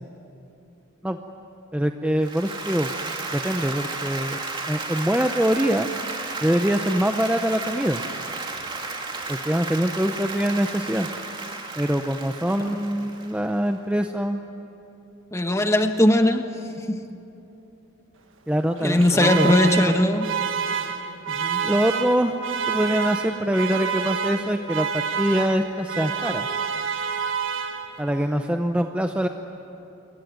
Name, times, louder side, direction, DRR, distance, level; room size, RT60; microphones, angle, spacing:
voice 1, 1.7-2.9 3.3-4.4 4.7-5.9 6.4-8.0 9.3-11.1 11.8-14.4 18.5-19.9 21.6-22.3 22.7-26.5 28.0-29.3, equal, 5° right, 5 dB, 0.7 m, -24 dB
Applause, 2.2-13.6, right 3 dB, 25° right, 2.5 m, -33 dB
voice 2, 15.3-16.4 16.9-17.0 18.8-20.3 21.3-21.6, left 1 dB, 15° left, 6 dB, 1.3 m, -19 dB
Alarm, 18.8-28.2, right 6 dB, 65° right, 1.6 m, -28 dB
27.0 x 22.5 x 9.5 m, 2.9 s
head